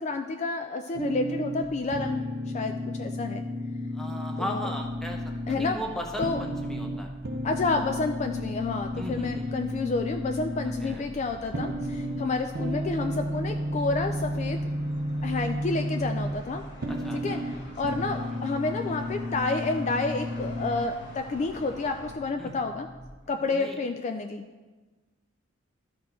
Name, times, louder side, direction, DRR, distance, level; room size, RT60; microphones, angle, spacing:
voice 1, 0.0-2.2 2.5-3.4 4.4-4.6 5.5-5.8 6.2-6.4 7.4-14.6 15.2-16.6 17.1-17.4 17.8-22.9 23.3-24.4, left 3 dB, 35° left, 6 dB, 0.3 m, -30 dB
sound 1, 0.9-20.8, equal, 50° right, 0.6 m, -32 dB
voice 2, 3.9-7.1 8.9-9.6 10.8-11.0 16.9-17.4 18.2-18.4 22.4-22.5 23.2-23.8, equal, ahead, 1 dB, 0.8 m, -37 dB
sound 2, 4.7-23.1, equal, 25° right, 1.1 m, -48 dB
sound 3, 8.6-22.1, left 1 dB, 55° left, 1.4 m, -49 dB
12.5 x 4.3 x 4.3 m, 1.3 s
head